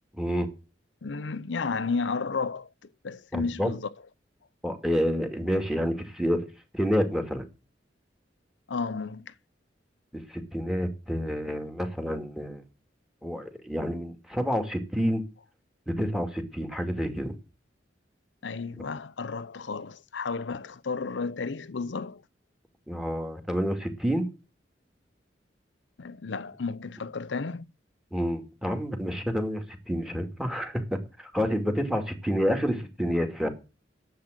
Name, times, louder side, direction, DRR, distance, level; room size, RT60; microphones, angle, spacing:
voice 1, 0.1-0.5 3.3-3.7 4.6-7.4 10.1-12.6 13.2-15.2 15.9-17.3 22.9-24.3 28.1-33.5, equal, 5° right, 2.3 m, -29 dB
voice 2, 1.0-2.7 3.0-3.9 8.7-9.3 18.4-22.2 26.0-27.7, left 4 dB, 80° left, 0.7 m, -32 dB
10.5 x 7.8 x 8.1 m
head